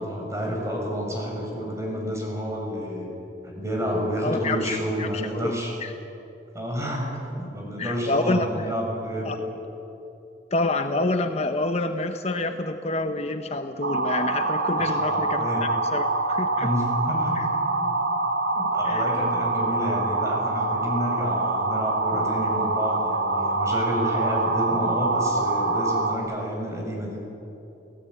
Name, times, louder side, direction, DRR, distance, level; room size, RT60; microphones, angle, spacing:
voice 1, 0.0-3.1 3.4-5.7 6.5-9.3 14.8-15.6 16.6-17.5 17.8-17.9 18.5-27.2, equal, 15° right, -1 dB, 6.7 m, -30 dB
voice 2, 4.2-4.7 5.0-5.5 5.8-5.9 7.8-8.7 9.2-9.4 10.5-16.7 17.3-17.5 18.8-19.2, left 2 dB, 40° left, 7 dB, 0.9 m, -28 dB
sound 1, 13.8-26.2, right 2 dB, 80° right, 2.5 m, -25 dB
29.0 x 17.5 x 9.4 m, 3.0 s
head